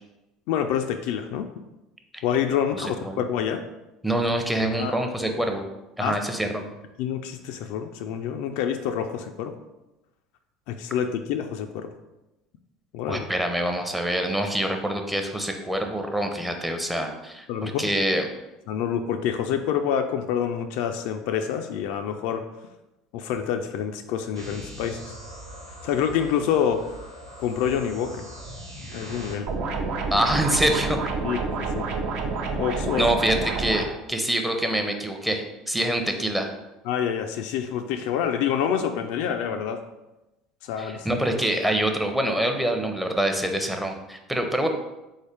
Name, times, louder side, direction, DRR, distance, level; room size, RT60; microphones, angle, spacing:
voice 1, 0.5-1.5 2.2-3.6 4.8-4.9 6.0-6.2 7.0-9.5 10.7-11.9 12.9-13.3 17.5-17.9 18.7-22.4 23.1-25.0 25.8-27.0 27.4-28.2 28.9-29.5 31.2-31.8 32.6-33.1 36.9-39.8 40.6-41.1, left 8 dB, 55° left, 7 dB, 0.3 m, -27 dB
voice 2, 2.8-3.2 4.0-5.6 6.0-6.7 13.1-18.3 30.1-31.0 33.0-36.5 40.8-44.7, right 1 dB, 5° right, 4 dB, 0.6 m, -25 dB
sound 1, 24.3-29.3, right 1 dB, 90° right, 1.1 m, -41 dB
sound 2, 29.5-33.9, right 4 dB, 50° right, 0.6 m, -28 dB
3.8 x 3.6 x 3.4 m, 0.99 s
figure-of-eight pair, 65°, 2 cm